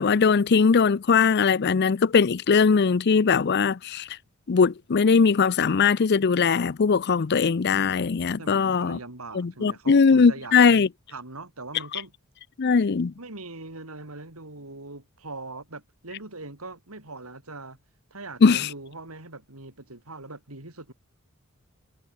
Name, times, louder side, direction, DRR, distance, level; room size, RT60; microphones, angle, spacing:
voice 1, 0.0-4.1 4.5-9.0 9.3-10.9 12.6-13.1 18.4-18.7, left 5 dB, 50° left, 0.5 m, -20 dB
voice 2, 8.4-12.1 13.2-17.8 18.1-20.9, right 2 dB, 85° right, 4.7 m, -41 dB
head